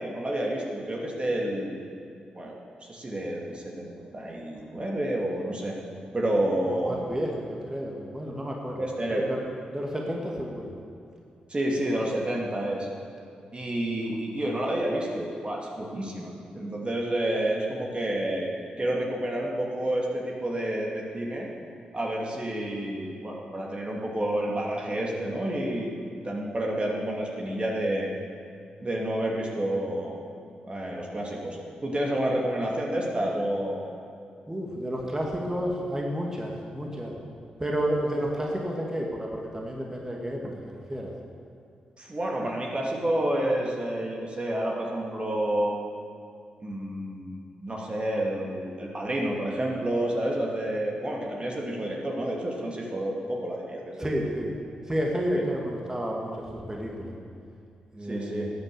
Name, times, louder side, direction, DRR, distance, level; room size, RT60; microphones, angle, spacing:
voice 1, 0.0-1.8 2.3-5.8 6.1-7.0 8.8-9.2 11.5-12.9 13.5-18.5 18.8-21.5 21.9-25.9 26.2-28.1 28.8-30.2 30.6-33.9 42.0-45.7 46.6-54.1 55.3-55.4 58.1-58.5, right 1 dB, 35° right, -2 dB, 2.4 m, -29 dB
voice 2, 4.0-4.7 6.5-8.8 9.1-9.4 9.7-10.7 14.1-14.2 34.5-37.1 37.6-41.1 54.0-54.5 54.9-57.2 57.9-58.5, equal, 20° right, -2 dB, 2.3 m, -31 dB
13.0 x 8.2 x 6.9 m, 2.4 s
supercardioid pair, 45°, 3 cm